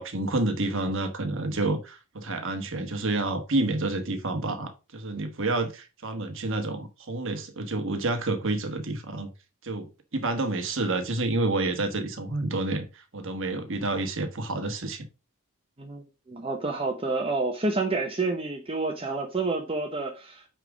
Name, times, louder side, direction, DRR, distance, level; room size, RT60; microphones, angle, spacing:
voice 1, 0.0-9.3 9.6-9.9 10.1-15.0, right 2 dB, 60° right, 1.3 m, -29 dB
voice 2, 15.8-20.5, right 3 dB, 25° right, 0.8 m, -29 dB
8.9 x 3.6 x 5.0 m
head